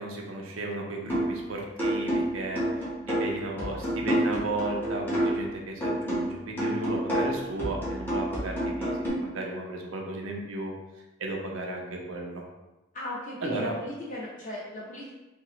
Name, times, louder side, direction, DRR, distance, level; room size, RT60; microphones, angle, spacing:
voice 1, 0.0-2.6 3.0-10.7 11.2-12.4 13.4-13.7, right 2 dB, 85° right, 0 dB, 0.6 m, -34 dB
sound 1, 1.1-1.4 1.8-5.5 5.8-9.1, right 1 dB, 10° left, 0.9 m, -29 dB
voice 2, 12.9-15.1, left 1 dB, 40° left, -7 dB, 1.1 m, -37 dB
3.5 x 2.0 x 2.9 m, 1.0 s
head